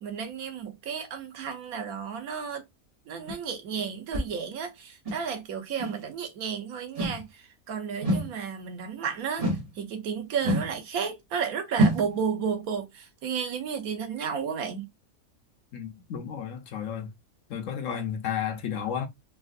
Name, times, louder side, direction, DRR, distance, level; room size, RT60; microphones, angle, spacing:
voice 1, 0.0-2.6 3.1-9.5 9.7-14.9, right 7 dB, 85° right, 1.3 m, -32 dB
sound 1, 3.3-3.4 4.1-4.3 5.1-5.2 5.8-6.0 7.0-7.2 8.0-8.3 9.4-9.7 10.4-10.7 11.8-12.1, right 1 dB, 30° right, 1.0 m, -26 dB
voice 2, 15.7-17.1 17.5-19.1, left 8 dB, 70° left, 1.0 m, -32 dB
3.6 x 2.4 x 2.4 m
omnidirectional pair, 1.5 m